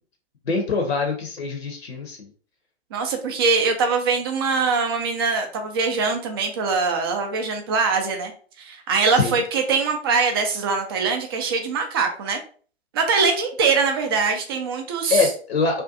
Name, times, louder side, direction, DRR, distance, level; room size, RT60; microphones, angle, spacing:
voice 1, 0.4-2.3 9.1-9.4 15.1-15.8, left 4 dB, 70° left, 3 dB, 0.7 m, -24 dB
voice 2, 2.9-8.3 8.6-12.4 12.9-15.3, right 4 dB, 25° right, 4 dB, 0.3 m, -22 dB
2.5 x 2.2 x 2.5 m, 0.43 s
figure-of-eight pair, 110°, 33 cm